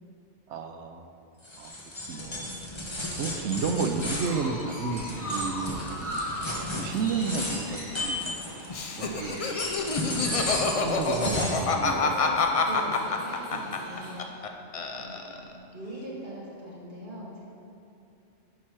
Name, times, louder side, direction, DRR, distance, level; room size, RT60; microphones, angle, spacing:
voice 1, 0.5-1.1 1.6-1.7 2.1-2.5 3.2-6.2 6.6-8.4 8.9-9.5 10.6-12.6 13.5-13.8, right 4 dB, 80° right, 7 dB, 0.9 m, -32 dB
sound 1, 1.4-8.9 9.4-11.7, left 1 dB, 25° left, 1.1 m, -34 dB
Chirp tweet, 3.6-14.2, equal, 90° left, 2.0 m, -40 dB
Laughter, 8.7-14.5 14.7-15.5, left 4 dB, 45° left, 0.4 m, -27 dB
voice 2, 11.2-14.2 14.9-15.4 15.7-17.5, right 1 dB, 45° right, -6 dB, 1.9 m, -40 dB
10.5 x 4.3 x 4.7 m, 2.7 s
omnidirectional pair, 1.2 m